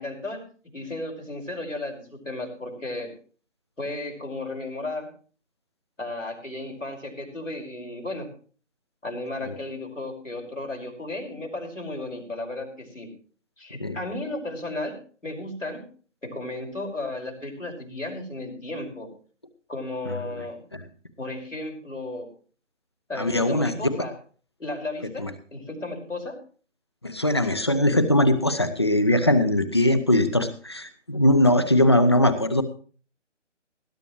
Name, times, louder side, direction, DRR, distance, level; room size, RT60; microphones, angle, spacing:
voice 1, 0.0-3.1 3.8-5.1 6.0-8.3 9.0-13.1 13.6-14.9 15.2-15.8 16.2-19.1 19.7-20.6 21.2-22.3 23.1-24.1 24.6-26.4, left 2 dB, 85° left, 1 dB, 5.7 m, -34 dB
voice 2, 23.2-23.7 25.2-25.3 27.0-32.6, left 1 dB, 20° left, 13 dB, 0.7 m, -20 dB
19.5 x 12.0 x 3.1 m, 0.41 s
figure-of-eight pair, 150°, 37 cm